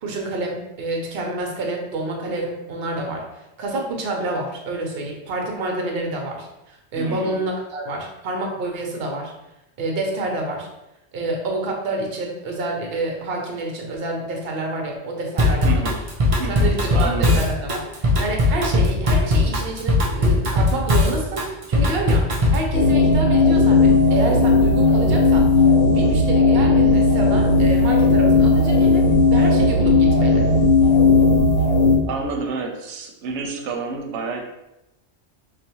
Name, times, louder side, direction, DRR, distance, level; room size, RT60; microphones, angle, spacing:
voice 1, 0.0-3.2 3.6-9.3 9.8-10.7 11.1-15.9 16.5-25.5 25.9-30.5, right 2 dB, 60° right, 1 dB, 0.9 m, -28 dB
voice 2, 7.0-7.4 15.6-16.0 16.4-17.4 32.1-34.4, right 3 dB, 85° right, 2 dB, 0.9 m, -29 dB
Drum kit / Drum, 15.4-22.7, left 2 dB, 40° right, 0.6 m, -19 dB
sound 1, 22.7-32.0, left 3 dB, 80° left, 1.0 m, -16 dB
4.0 x 2.1 x 2.8 m, 0.91 s
omnidirectional pair, 1.2 m